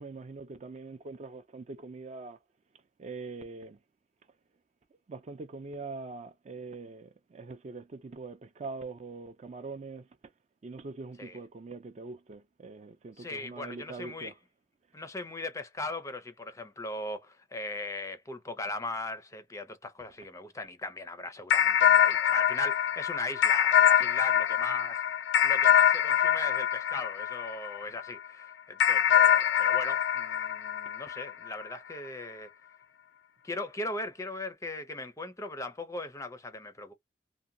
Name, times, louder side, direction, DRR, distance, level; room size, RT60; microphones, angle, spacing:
voice 1, 0.0-2.4 3.0-3.8 5.1-10.0 10.6-14.3, right 3 dB, 40° right, 0.4 m, -43 dB
voice 2, 13.2-14.3 14.9-25.0 25.4-32.5 33.4-36.9, left 2 dB, 20° left, 0.4 m, -38 dB
sound 1, 21.5-28.1 28.8-31.6, left 9 dB, 85° left, 0.3 m, -24 dB
2.8 x 2.1 x 2.5 m
head